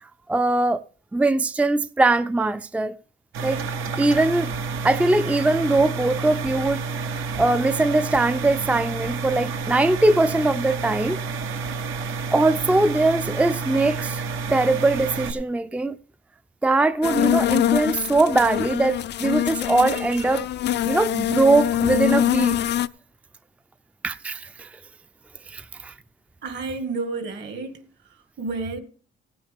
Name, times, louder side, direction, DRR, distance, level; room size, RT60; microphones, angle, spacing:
voice 1, 0.3-0.8 1.1-2.9 3.4-3.6 4.0-4.5 4.8-11.2 12.3-14.2 14.5-16.0 16.6-20.5 20.8-22.6 24.0-24.7 25.5-25.9, right 2 dB, 5° right, 0.4 m, -21 dB
sound 1, 3.3-15.3, right 4 dB, 85° right, 1.3 m, -30 dB
sound 2, 17.0-22.9, left 12 dB, 60° left, 0.5 m, -24 dB
voice 2, 26.4-27.9 28.4-28.8, right 3 dB, 65° right, 2.1 m, -30 dB
16.0 x 9.3 x 3.5 m
cardioid pair, 90°, 20 cm